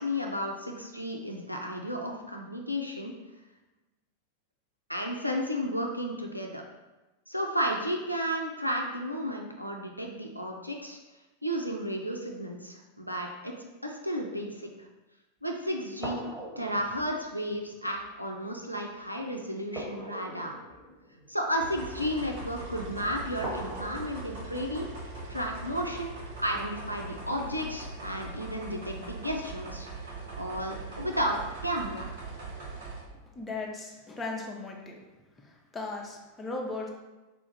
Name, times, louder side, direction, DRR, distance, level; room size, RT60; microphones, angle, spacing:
voice 1, 0.0-3.1 4.9-6.6 7.3-11.0 11.4-14.9 15.4-20.6 21.3-24.9 25.3-29.9 30.4-32.2, equal, 90° left, 1 dB, 0.3 m, -33 dB
sound 1, 16.0-18.1 19.7-22.0 23.4-23.9, right 1 dB, 20° right, 1.4 m, -41 dB
sound 2, 21.6-33.0, right 2 dB, 60° right, 0.8 m, -41 dB
voice 2, 33.4-35.0 35.7-36.9, left 3 dB, 15° left, -1 dB, 0.6 m, -36 dB
3.6 x 2.3 x 3.2 m, 1.1 s
figure-of-eight pair, 90°, 0 cm